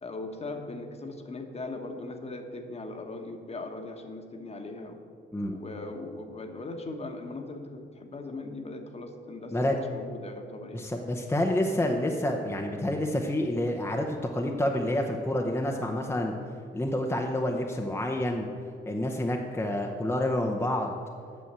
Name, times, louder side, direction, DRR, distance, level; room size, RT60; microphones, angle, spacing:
voice 1, 0.0-5.0 5.5-10.8, left 2 dB, 30° left, 5 dB, 1.2 m, -39 dB
voice 2, 10.7-16.3 16.7-18.5 18.9-21.0, left 1 dB, 10° left, 1 dB, 0.8 m, -28 dB
8.6 x 6.2 x 7.5 m, 2.3 s
cardioid pair, 90°, 20 cm